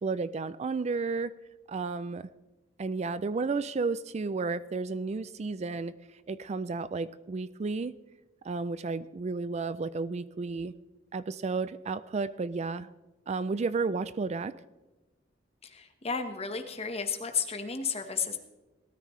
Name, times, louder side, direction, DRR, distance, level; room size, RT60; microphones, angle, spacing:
voice 1, 0.0-1.3 1.7-2.3 2.8-5.9 6.3-7.9 8.4-10.7 11.1-12.9 13.3-14.5, right 4 dB, 35° right, 15 dB, 0.4 m, -32 dB
voice 2, 15.6-18.4, left 6 dB, 35° left, 6 dB, 1.3 m, -33 dB
18.5 x 13.0 x 3.2 m, 1.1 s
head